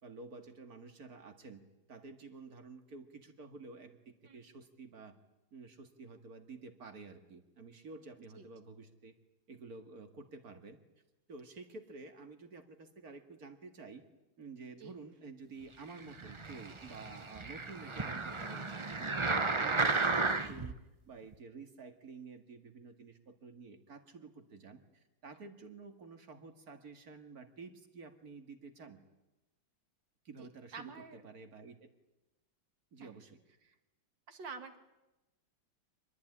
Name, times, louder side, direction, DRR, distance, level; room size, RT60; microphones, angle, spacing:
voice 1, 0.0-1.6 1.9-5.1 5.5-9.1 9.5-10.8 11.3-14.0 14.4-20.8 21.1-29.0 30.2-31.9 32.9-33.4, right 4 dB, 50° right, 7 dB, 2.5 m, -51 dB
sound 1, 16.1-20.7 21.3-21.4, right 3 dB, 30° right, 0.6 m, -33 dB
voice 2, 30.4-31.2 33.0-33.2 34.3-34.8, right 5 dB, 65° right, 8 dB, 2.7 m, -48 dB
25.5 x 20.5 x 9.9 m, 1.0 s
omnidirectional pair, 2.2 m